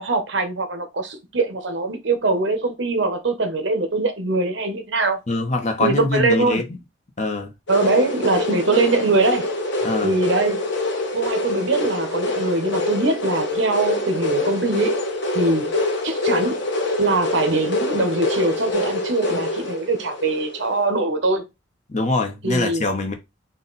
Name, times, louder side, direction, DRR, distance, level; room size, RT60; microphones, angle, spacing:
voice 1, 0.0-5.2 5.8-6.6 7.7-9.5 10.0-10.7 11.1-15.0 15.3-15.7 16.0-16.6 17.0-21.4 22.4-22.8, right 2 dB, 70° right, 0.9 m, -22 dB
voice 2, 5.3-6.8 7.2-7.5 9.8-10.1 21.9-23.1, left 2 dB, 35° left, 0.8 m, -23 dB
sound 1, 7.7-20.8, left 2 dB, 65° left, 1.1 m, -25 dB
4.1 x 2.4 x 3.9 m
head